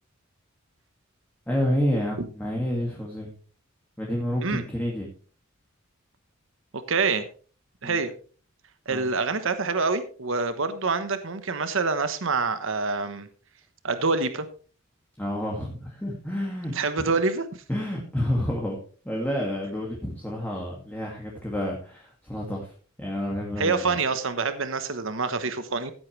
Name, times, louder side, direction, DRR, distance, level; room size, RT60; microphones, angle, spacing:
voice 1, 1.5-3.3 4.0-5.1 7.8-8.0 8.9-9.1 15.2-17.1 17.7-18.8 19.0-22.7 23.0-24.0, equal, 10° left, -2 dB, 2.2 m, -29 dB
voice 2, 6.7-7.3 7.8-8.1 8.9-13.3 13.8-14.5 16.7-17.5 23.6-25.9, right 4 dB, 70° right, 11 dB, 1.1 m, -26 dB
15.5 x 8.6 x 3.3 m, 0.40 s
head